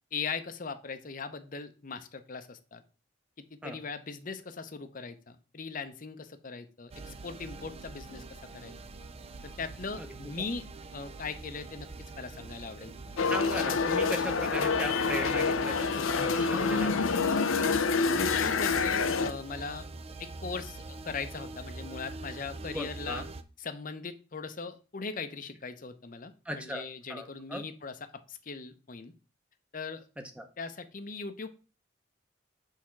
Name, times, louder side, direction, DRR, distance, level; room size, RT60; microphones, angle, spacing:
voice 1, 0.1-2.8 3.5-8.2 8.5-8.7 9.4-10.7 10.9-13.2 18.1-19.8 20.2-23.2 23.6-29.1 29.7-30.1 30.6-31.5, left 4 dB, 40° left, 10 dB, 0.7 m, -39 dB
sound 1, 6.9-23.4, right 3 dB, 30° right, 0.4 m, -44 dB
sound 2, 13.2-19.3, left 5 dB, 85° left, 0.6 m, -27 dB
voice 2, 13.3-17.3 22.7-23.2 26.4-27.6 30.4-30.5, equal, 5° right, 5 dB, 0.8 m, -37 dB
6.5 x 3.6 x 5.8 m, 0.34 s
head